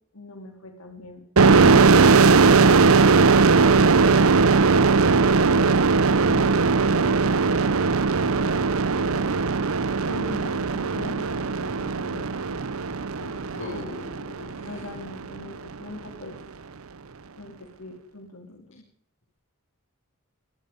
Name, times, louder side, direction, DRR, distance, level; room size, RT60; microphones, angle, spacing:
voice 1, 0.1-2.8 5.5-5.7 6.2-7.2 8.3-9.5 10.1-12.6 13.2-13.9 14.6-16.4 17.3-18.8, left 2 dB, 85° left, 4 dB, 3.9 m, -40 dB
sound 1, 1.4-14.8, right 4 dB, 70° right, 0.8 m, -19 dB
voice 2, 13.5-14.8, left 2 dB, 60° left, -3 dB, 6.5 m, -39 dB
26.5 x 19.5 x 5.4 m, 0.63 s
head